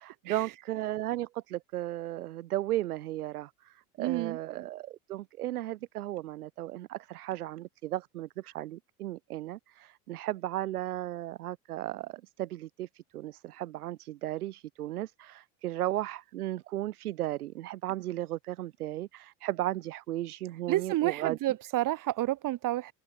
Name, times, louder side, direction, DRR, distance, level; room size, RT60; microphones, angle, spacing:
voice 1, 0.0-21.4, right 14 dB, 90° right, 1.2 m, -35 dB
voice 2, 4.0-4.4 20.7-22.9, right 15 dB, 45° right, 1.4 m, -30 dB
hypercardioid pair, 80°, 44 cm